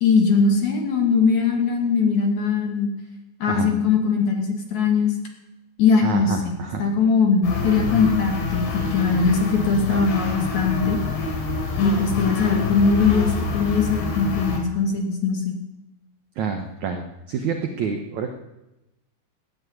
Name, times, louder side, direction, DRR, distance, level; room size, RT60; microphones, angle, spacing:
voice 1, 0.0-2.9 3.4-5.1 5.8-6.5 6.8-11.0 11.8-15.5, left 5 dB, 50° left, 1 dB, 3.2 m, -20 dB
voice 2, 6.0-6.8 9.9-10.0 16.4-18.3, right 5 dB, 75° right, 4 dB, 1.7 m, -27 dB
sound 1, 7.4-14.6, left 3 dB, 75° left, 4.9 m, -27 dB
14.0 x 9.7 x 9.4 m, 0.97 s
omnidirectional pair, 5.0 m